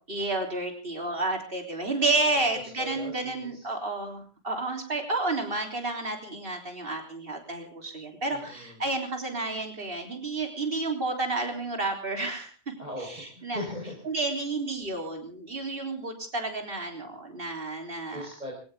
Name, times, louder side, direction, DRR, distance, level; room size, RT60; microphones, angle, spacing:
voice 1, 0.1-12.5 13.0-13.6 14.1-18.3, right 2 dB, 60° right, 3 dB, 3.8 m, -31 dB
voice 2, 2.5-3.7 8.3-8.8 12.8-14.2 18.1-18.5, left 1 dB, 40° right, -1 dB, 4.8 m, -39 dB
22.0 x 17.5 x 3.7 m, 0.39 s
omnidirectional pair, 1.1 m